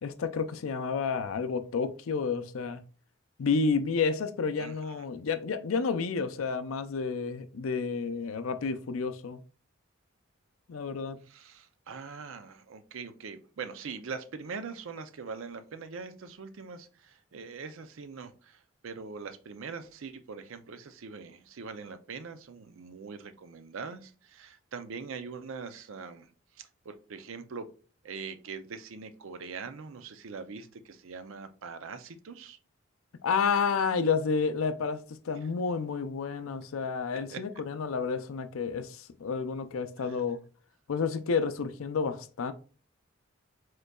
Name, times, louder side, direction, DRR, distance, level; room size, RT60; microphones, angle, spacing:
voice 1, 0.0-2.8 3.4-9.4 10.7-11.2 33.2-40.4 40.9-42.5, left 5 dB, 85° left, 0.5 m, -30 dB
voice 2, 4.6-4.9 11.3-26.3 26.6-27.7 28.0-32.6 37.1-37.4 40.0-40.2, right 5 dB, 75° right, 0.5 m, -42 dB
5.2 x 3.8 x 2.3 m
head